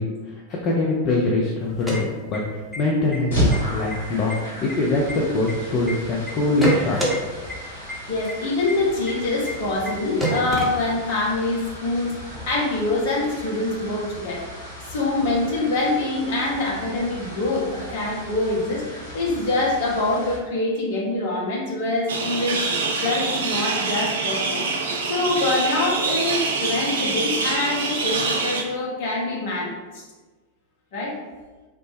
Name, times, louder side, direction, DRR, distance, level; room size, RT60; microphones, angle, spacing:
voice 1, 0.0-7.0, left 2 dB, 35° left, -3 dB, 0.4 m, -23 dB
sound 1, 1.6-2.8 3.1-3.2 3.5-4.0 4.3-5.9 6.3-7.2 7.5-7.6 7.9-8.0 8.3-8.4 8.7-8.8 9.1-9.2 9.5-9.6 9.9-10.0 10.2-11.2, right 1 dB, ahead, 0.8 m, -27 dB
sound 2, 3.3-20.4, equal, 70° left, 1.3 m, -34 dB
voice 2, 8.1-14.5 14.9-22.6 23.0-24.7 25.0-30.0 30.9-31.1, left 2 dB, 55° left, -3 dB, 0.8 m, -25 dB
sound 3, 22.1-28.6, right 4 dB, 65° right, 0.3 m, -25 dB
3.1 x 2.0 x 3.2 m, 1.3 s
figure-of-eight pair, 90°, 0 cm